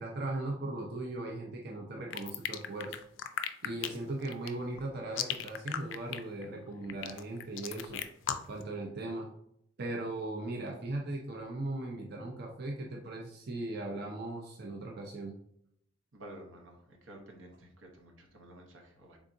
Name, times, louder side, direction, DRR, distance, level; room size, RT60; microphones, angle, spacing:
voice 1, 0.0-3.0 3.6-8.0 8.5-9.3 9.8-15.4, right 2 dB, 55° right, 0 dB, 0.5 m, -38 dB
sound 1, 2.1-8.6, left 9 dB, 70° left, 0.3 m, -36 dB
voice 2, 16.1-19.2, right 1 dB, 90° right, 2 dB, 0.9 m, -51 dB
3.9 x 3.5 x 2.6 m, 0.72 s
head